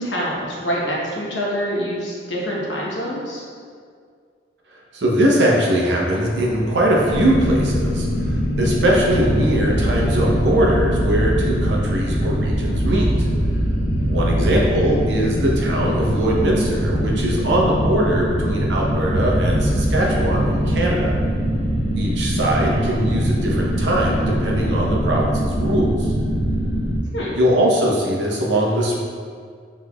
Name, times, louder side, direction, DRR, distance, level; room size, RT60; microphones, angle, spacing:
voice 1, 0.0-3.4 14.4-14.5 22.3-22.8 27.1-27.3, equal, 85° left, -4 dB, 1.0 m, -26 dB
voice 2, 4.7-13.3 14.0-21.1 21.9-26.1 27.3-29.0, right 1 dB, 80° right, -3 dB, 0.8 m, -21 dB
sound 1, 6.2-18.7 19.0-21.2, right 1 dB, 35° right, 0.6 m, -27 dB
sound 2, 7.0-27.0, equal, 40° left, 0.6 m, -23 dB
5.9 x 3.1 x 2.3 m, 2.1 s
head